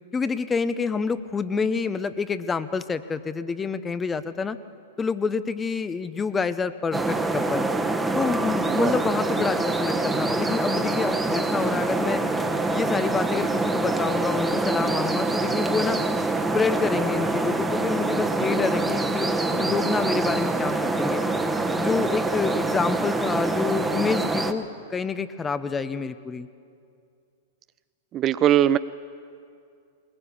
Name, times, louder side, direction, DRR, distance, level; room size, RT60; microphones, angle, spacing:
voice 1, 0.1-4.6 5.0-7.7 8.1-12.2 12.7-16.0 16.5-21.2 21.8-26.5, left 5 dB, 15° left, 13 dB, 0.8 m, -27 dB
sound 1, 6.9-24.5, right 2 dB, 10° right, 1.2 m, -25 dB
voice 2, 28.1-28.8, right 11 dB, 30° right, 14 dB, 0.4 m, -20 dB
20.5 x 20.5 x 7.1 m, 2.4 s
hypercardioid pair, 105°, 0 cm